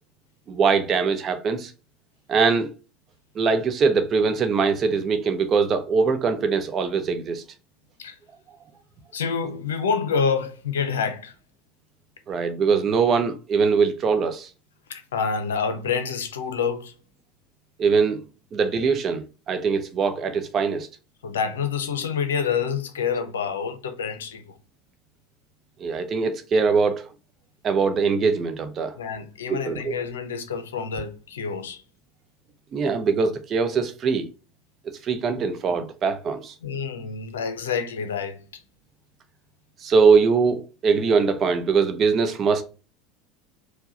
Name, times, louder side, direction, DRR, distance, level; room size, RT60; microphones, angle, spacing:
voice 1, 0.5-1.7 2.3-2.7 3.3-7.4 12.3-14.5 17.8-18.2 18.5-20.9 25.8-27.1 27.6-28.9 29.5-29.9 32.7-34.3 35.0-36.5 39.8-42.6, right 5 dB, 35° right, 0.7 m, -22 dB
voice 2, 9.1-11.3 14.9-16.9 21.2-24.6 29.0-31.8 35.4-35.5 36.6-38.6, left 6 dB, 75° left, 0.6 m, -27 dB
4.6 x 2.2 x 3.8 m
figure-of-eight pair, 75°, 0 cm